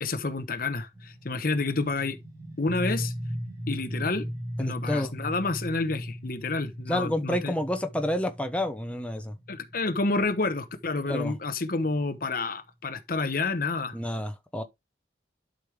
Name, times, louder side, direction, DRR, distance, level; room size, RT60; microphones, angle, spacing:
voice 1, 0.0-2.2 2.6-3.1 3.7-4.3 4.6-7.5 9.5-14.0, left 3 dB, 55° left, 1.0 m, -29 dB
sound 1, 0.9-12.4, equal, 20° right, 5.0 m, -38 dB
voice 2, 4.6-5.1 6.9-9.3 11.1-11.3 13.9-14.6, left 1 dB, 5° left, 1.0 m, -29 dB
11.5 x 5.3 x 3.4 m
head